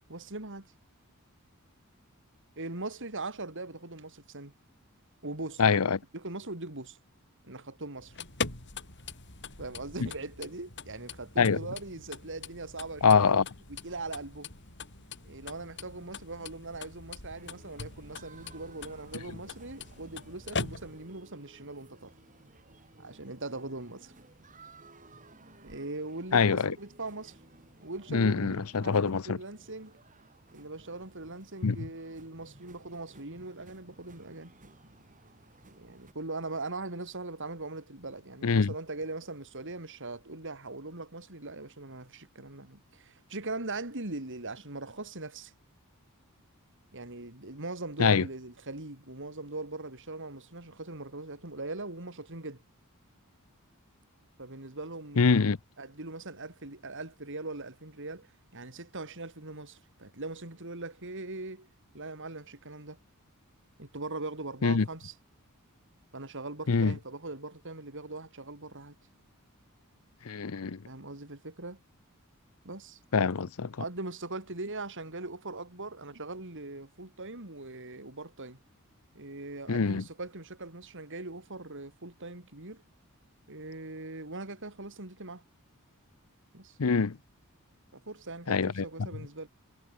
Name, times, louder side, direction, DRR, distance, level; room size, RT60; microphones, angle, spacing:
voice 1, 0.1-0.7 2.6-4.5 5.2-5.6 6.1-7.0 7.4-8.2 9.6-13.4 13.7-14.5 15.2-22.1 23.0-24.1 25.6-27.4 27.8-30.0 30.5-34.5 35.8-45.5 46.9-52.6 54.4-55.4 55.8-58.3 58.5-61.7 61.9-63.0 63.8-65.1 66.1-68.9 70.9-71.8 72.6-73.0 73.8-78.6 79.1-82.8 83.5-85.4 86.5-86.8 87.9-89.5, right 2 dB, 60° right, 4.3 m, -40 dB
voice 2, 5.6-6.0 11.4-11.6 13.0-13.4 26.3-26.7 28.1-29.4 31.6-31.8 38.4-38.7 48.0-48.2 55.2-55.6 64.6-64.9 66.7-66.9 70.3-70.8 73.1-73.7 79.7-80.0 86.8-87.2 88.5-88.9, left 5 dB, 70° left, 0.7 m, -24 dB
sound 1, 8.0-21.2, left 4 dB, 55° left, 5.4 m, -42 dB
sound 2, 17.3-36.1, right 2 dB, 35° right, 4.7 m, -57 dB
head